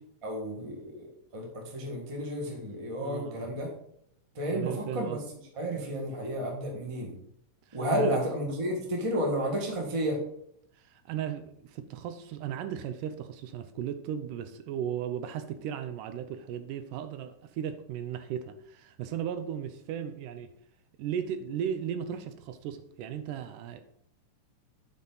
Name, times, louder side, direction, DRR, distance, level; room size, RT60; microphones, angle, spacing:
voice 1, 0.2-3.7 4.3-5.2 5.5-7.1 7.7-10.2, equal, 20° right, -1 dB, 0.8 m, -31 dB
voice 2, 3.0-3.5 4.5-5.2 7.7-8.2 10.8-20.5 21.0-23.8, right 9 dB, 80° right, 9 dB, 2.1 m, -36 dB
8.4 x 5.7 x 3.9 m, 0.71 s
omnidirectional pair, 3.8 m